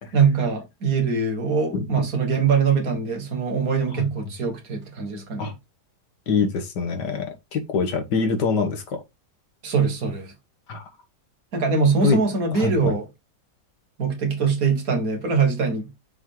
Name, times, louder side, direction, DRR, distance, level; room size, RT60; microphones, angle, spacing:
voice 1, 0.1-5.5 9.6-10.3 11.5-13.1 14.0-15.9, right 5 dB, 55° right, 2.0 m, -22 dB
voice 2, 1.7-2.1 5.4-5.5 6.3-9.0 10.7-10.8 12.0-12.2 12.5-13.0, left 4 dB, 80° left, 1.9 m, -24 dB
6.2 x 4.6 x 3.7 m
omnidirectional pair, 1.8 m